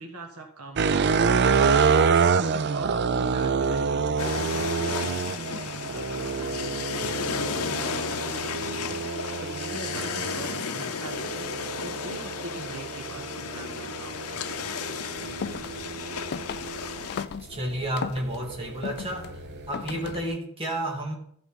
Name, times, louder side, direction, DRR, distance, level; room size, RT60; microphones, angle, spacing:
voice 1, 0.0-1.7 2.4-16.2, right 2 dB, 80° right, 4 dB, 1.5 m, -43 dB
sound 1, 0.8-17.1 17.7-20.2, right 5 dB, 50° right, 0.4 m, -28 dB
sound 2, 4.2-17.3, left 6 dB, 85° left, 0.7 m, -34 dB
sound 3, 15.2-20.4, left 6 dB, 45° left, 0.3 m, -38 dB
voice 2, 17.5-21.2, right 1 dB, 25° right, -1 dB, 2.2 m, -31 dB
13.5 x 6.1 x 5.3 m, 0.65 s
head